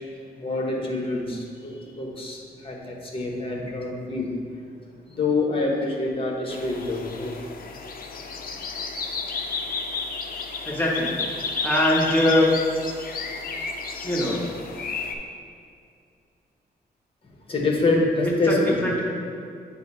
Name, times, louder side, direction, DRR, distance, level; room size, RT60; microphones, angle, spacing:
voice 1, 0.3-2.4 2.6-4.3 5.1-7.3 17.5-18.8, left 2 dB, 30° left, -1 dB, 1.1 m, -26 dB
sound 1, 6.5-15.2, left 4 dB, 55° left, 0.5 m, -32 dB
voice 2, 10.6-11.1 11.6-12.5 14.0-14.4 18.2-19.0, left 1 dB, 10° left, -5 dB, 1.3 m, -22 dB
8.0 x 2.7 x 5.4 m, 2.4 s
wide cardioid pair, 115°, 17 cm